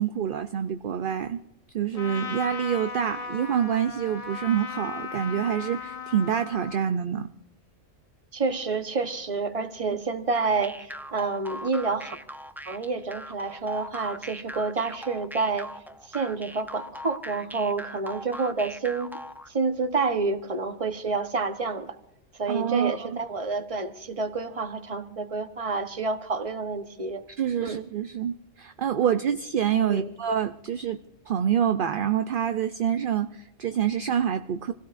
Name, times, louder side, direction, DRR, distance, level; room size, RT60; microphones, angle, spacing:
voice 1, 0.0-1.4 1.7-7.3 22.5-23.2 27.4-31.0 31.3-34.7, right 9 dB, 55° right, 0.7 m, -26 dB
Trumpet, 1.9-6.9, left 5 dB, 30° left, 1.2 m, -37 dB
voice 2, 8.3-12.2 12.6-15.7 16.0-19.2 19.5-22.0 22.4-27.2 27.6-27.8 29.9-30.1, right 4 dB, 30° right, 1.1 m, -29 dB
sound 1, 10.3-19.5, equal, 5° right, 0.4 m, -40 dB
27.5 x 17.0 x 2.6 m
omnidirectional pair, 1.3 m